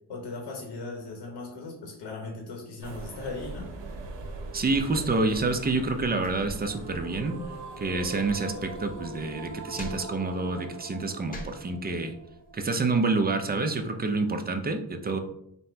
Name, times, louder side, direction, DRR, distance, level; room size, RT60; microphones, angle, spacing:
voice 1, 0.1-3.7, left 3 dB, 75° left, 1 dB, 1.0 m, -38 dB
sound 1, 2.8-9.8, right 2 dB, 80° right, 0.8 m, -42 dB
voice 2, 4.5-7.4 7.8-12.1 12.5-15.2, right 3 dB, 25° right, 7 dB, 0.5 m, -28 dB
sound 2, 6.6-13.6, right 2 dB, 45° right, 1.0 m, -43 dB
sound 3, 9.2-14.2, left 1 dB, 20° left, 0.8 m, -46 dB
4.1 x 2.1 x 4.4 m, 0.77 s
cardioid pair, 90°, 43 cm